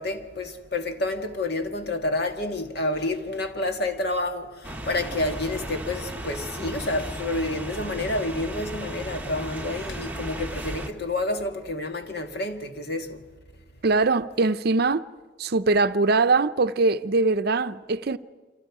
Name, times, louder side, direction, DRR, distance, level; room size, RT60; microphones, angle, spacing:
voice 1, 0.0-13.3, left 2 dB, 60° left, 1.8 m, -29 dB
sound 1, 4.6-10.9, right 1 dB, 10° right, 1.3 m, -35 dB
voice 2, 13.8-15.0 15.4-18.2, right 3 dB, 55° right, 0.6 m, -22 dB
28.0 x 26.0 x 4.9 m
head